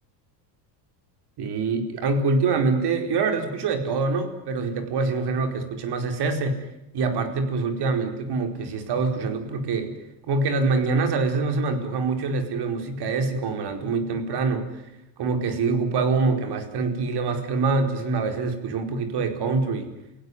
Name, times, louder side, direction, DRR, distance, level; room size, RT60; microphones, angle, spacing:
voice 1, 1.4-6.7 6.9-9.9 10.3-14.8 15.2-19.9, right 4 dB, 50° right, 7 dB, 4.7 m, -25 dB
29.0 x 16.5 x 9.7 m, 0.89 s
supercardioid pair, 100°, 50 cm